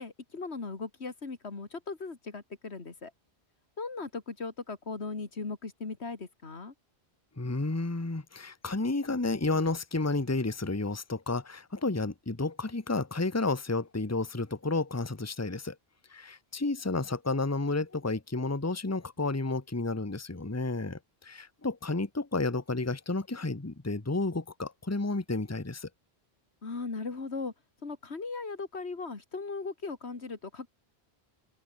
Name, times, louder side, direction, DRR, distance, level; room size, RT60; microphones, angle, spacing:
voice 1, 0.0-3.1 3.8-6.7 26.6-27.5 27.8-30.7, left 4 dB, 90° left, 2.6 m, -38 dB
voice 2, 7.4-15.8 16.1-25.9, left 3 dB, 15° left, 1.2 m, -31 dB
open air
omnidirectional pair, 1.1 m